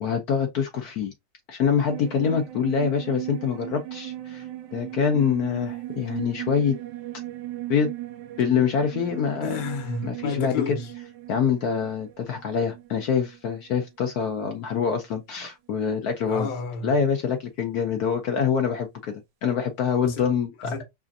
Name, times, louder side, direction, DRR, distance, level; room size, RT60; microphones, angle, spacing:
voice 1, 0.0-1.1 1.5-4.4 4.7-6.8 7.7-7.9 8.4-9.6 10.0-10.8 11.3-16.5 16.8-20.7, left 7 dB, 65° left, 1.1 m, -25 dB
sound 1, 1.9-13.8 14.1-14.2, right 15 dB, 80° right, 1.2 m, -37 dB
voice 2, 9.4-10.9 16.3-16.9 20.0-20.3 20.6-20.8, left 4 dB, 40° left, 0.8 m, -31 dB
4.9 x 2.5 x 2.6 m
omnidirectional pair, 2.0 m